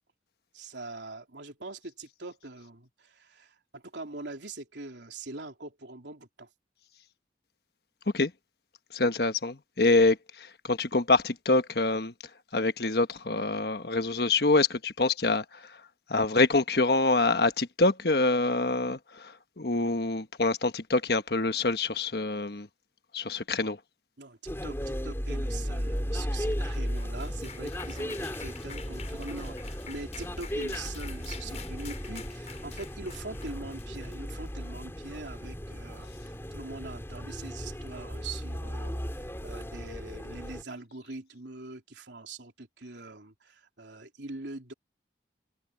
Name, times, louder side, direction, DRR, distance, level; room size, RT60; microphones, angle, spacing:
voice 1, 0.5-6.5 24.2-44.7, right 3 dB, 85° right, 3.5 m, -43 dB
voice 2, 8.9-12.1 12.5-15.4 16.1-22.7 23.1-23.8, left 3 dB, 65° left, 1.3 m, -26 dB
sound 1, 24.5-40.6, equal, 15° left, 4.2 m, -36 dB
sound 2, 26.5-34.8, left 7 dB, 40° left, 7.8 m, -47 dB
head